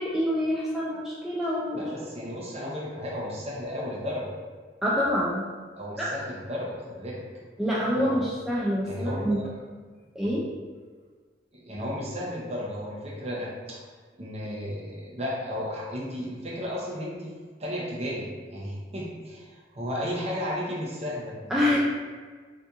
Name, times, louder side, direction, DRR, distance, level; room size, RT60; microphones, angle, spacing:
voice 1, 0.0-1.9 4.8-5.4 6.0-6.1 7.6-9.4 10.2-10.5 21.5-21.8, equal, 5° right, -7 dB, 0.3 m, -26 dB
voice 2, 1.7-4.3 5.8-7.2 7.9-8.2 8.8-9.3 11.5-13.8 14.2-17.3 17.6-21.8, equal, 35° right, -4 dB, 0.7 m, -34 dB
2.8 x 2.5 x 3.5 m, 1.5 s
head